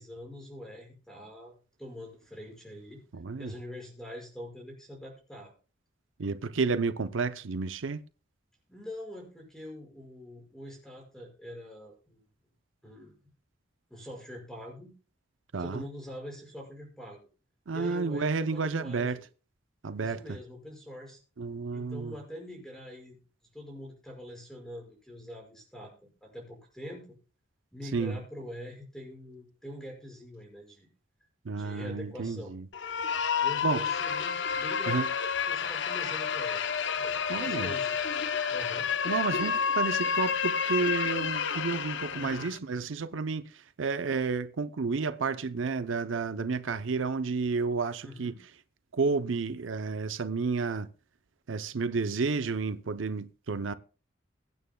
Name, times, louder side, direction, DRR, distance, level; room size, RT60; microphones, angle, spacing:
voice 1, 0.0-1.5 1.8-3.0 3.4-5.5 8.7-12.2 12.8-13.2 13.9-14.9 15.6-17.2 17.7-19.2 20.0-21.2 21.7-23.2 23.5-27.2 27.7-30.9 31.5-32.5 33.4-35.0 35.5-38.0 38.5-38.9 42.2-42.5 48.0-48.4, left 1 dB, 5° left, 5.8 m, -44 dB
voice 2, 3.1-3.5 6.2-8.0 15.5-15.8 17.7-19.2 19.8-20.2 21.4-22.1 27.9-28.2 31.5-32.6 33.6-33.8 34.9-35.1 37.3-37.7 39.0-48.3 48.9-50.9 51.5-53.7, right 4 dB, 85° right, 0.6 m, -31 dB
sound 1, 32.7-42.6, left 6 dB, 70° left, 0.7 m, -30 dB
23.0 x 9.0 x 2.3 m
head